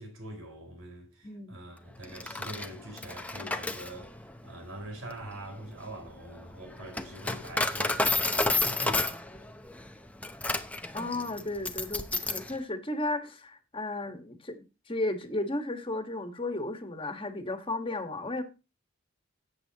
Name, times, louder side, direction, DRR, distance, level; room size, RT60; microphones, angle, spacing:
voice 1, 0.0-9.2, right 1 dB, 80° right, 5.1 m, -44 dB
voice 2, 1.2-1.6 10.9-18.4, left 2 dB, 25° left, 1.6 m, -34 dB
Coin (dropping), 2.0-12.5, left 2 dB, 5° left, 0.8 m, -32 dB
13.5 x 8.9 x 3.0 m
head